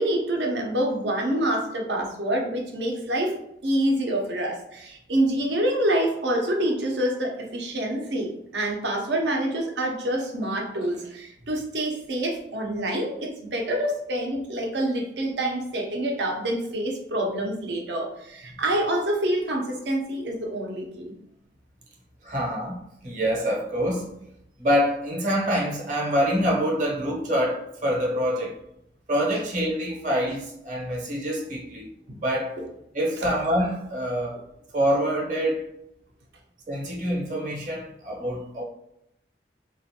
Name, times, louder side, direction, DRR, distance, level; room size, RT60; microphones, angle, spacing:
voice 1, 0.0-3.4 3.6-21.1 32.1-32.2, right 1 dB, 80° right, 0.6 m, -26 dB
voice 2, 22.2-24.1 24.6-28.6 29.1-31.9 32.2-32.6 32.9-34.4 34.7-35.7 36.7-38.6, equal, 45° right, 0.8 m, -26 dB
3.2 x 2.4 x 2.7 m
head